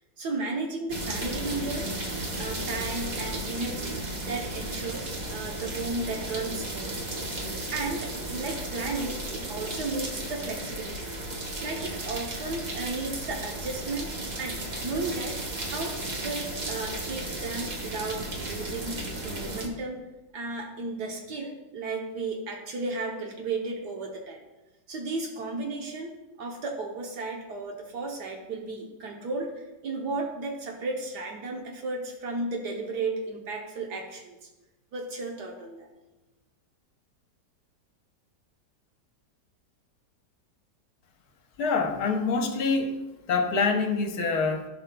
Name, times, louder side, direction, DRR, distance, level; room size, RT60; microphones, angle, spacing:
voice 1, 0.2-1.9 2.4-4.0 4.3-7.1 7.7-11.2 11.6-14.1 14.4-15.4 15.7-20.0 20.3-24.4 24.9-26.1 26.4-34.5 34.9-35.9, right 3 dB, 70° right, 1 dB, 1.4 m, -34 dB
sound 1, 0.9-19.7, right 1 dB, 30° right, 0.9 m, -34 dB
voice 2, 41.6-43.0 43.3-44.7, left 4 dB, 65° left, 5 dB, 1.3 m, -25 dB
14.0 x 5.5 x 2.2 m, 1.1 s
omnidirectional pair, 1.9 m